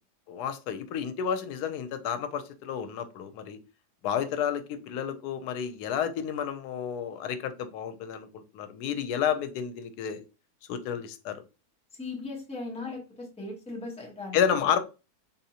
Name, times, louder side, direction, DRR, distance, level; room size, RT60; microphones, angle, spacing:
voice 1, 0.3-3.6 4.0-8.3 8.5-10.2 10.7-11.4 14.3-14.8, left 8 dB, 90° left, 10 dB, 1.1 m, -30 dB
voice 2, 12.0-14.4, left 3 dB, 5° left, -1 dB, 0.7 m, -38 dB
3.7 x 2.7 x 2.7 m, 0.30 s
omnidirectional pair, 1.6 m